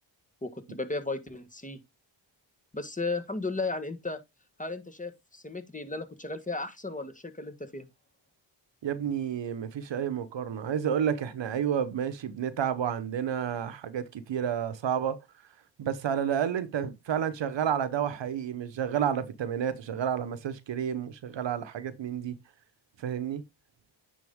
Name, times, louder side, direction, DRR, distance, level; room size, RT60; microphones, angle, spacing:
voice 1, 0.4-1.8 2.7-4.2 4.6-7.9, left 3 dB, 15° left, 1.5 m, -35 dB
voice 2, 8.8-15.2 15.8-22.4 23.0-23.4, right 8 dB, 65° right, 1.1 m, -30 dB
9.6 x 4.0 x 3.6 m
cardioid pair, 65°, 48 cm